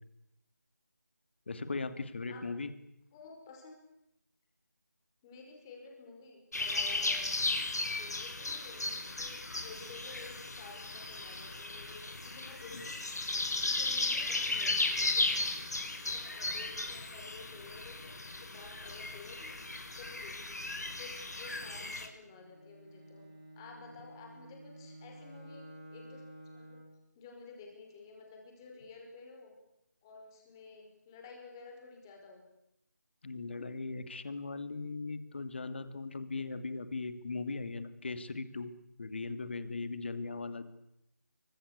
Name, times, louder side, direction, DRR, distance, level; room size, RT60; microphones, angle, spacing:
voice 1, 1.5-2.7 33.2-38.7 39.0-40.6, left 3 dB, 40° left, 11 dB, 2.7 m, -38 dB
voice 2, 3.1-3.7 5.2-7.3 8.0-13.0 13.3-15.4 16.1-20.6 21.0-23.3 23.6-26.2 26.5-26.8 27.2-29.5 30.0-32.4, left 4 dB, 15° left, 1 dB, 5.6 m, -52 dB
sound 1, 6.5-22.1, left 2 dB, 65° left, 5.9 m, -35 dB
Bowed string instrument, 22.2-27.0, right 1 dB, 25° right, 7.3 m, -52 dB
26.0 x 24.5 x 8.5 m, 0.82 s
figure-of-eight pair, 170°, 10 cm